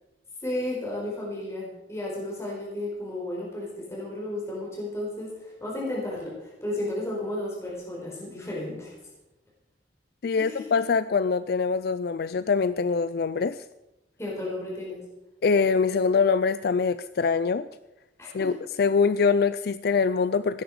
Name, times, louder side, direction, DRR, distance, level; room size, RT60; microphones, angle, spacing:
voice 1, 0.4-9.0 10.3-10.7 14.2-15.0 18.2-18.5, left 1 dB, 15° left, -4 dB, 4.4 m, -33 dB
voice 2, 10.2-13.6 15.4-17.7 18.3-18.5 18.8-20.6, left 5 dB, 60° left, 14 dB, 0.4 m, -24 dB
17.5 x 10.0 x 4.9 m, 0.97 s
head